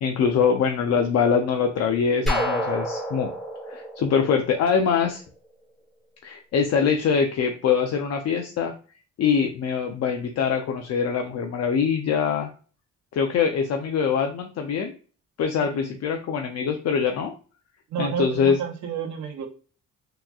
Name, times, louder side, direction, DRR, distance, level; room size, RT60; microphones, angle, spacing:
voice 1, 0.0-3.3 3.7-5.2 6.2-8.7 9.2-12.5 13.1-14.9 15.4-17.3 18.0-18.6, left 6 dB, 60° left, 4 dB, 0.5 m, -23 dB
sound 1, 2.3-5.1, equal, ahead, 1.1 m, -29 dB
voice 2, 15.6-15.9 17.9-19.5, right 8 dB, 70° right, 5 dB, 0.8 m, -31 dB
3.5 x 3.0 x 2.3 m, 0.38 s
cardioid pair, 90°, 30 cm